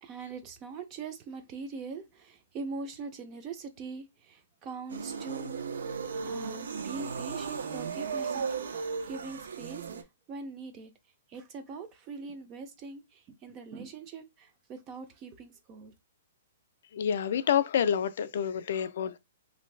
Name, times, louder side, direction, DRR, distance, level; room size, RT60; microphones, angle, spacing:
voice 1, 0.0-10.9 11.3-15.9, right 4 dB, 20° right, 0.4 m, -42 dB
sound 1, 4.9-10.0, right 5 dB, 80° right, 0.5 m, -35 dB
voice 2, 16.9-19.2, left 8 dB, 55° left, 0.3 m, -28 dB
3.1 x 2.6 x 3.2 m
hypercardioid pair, 170°, 0 cm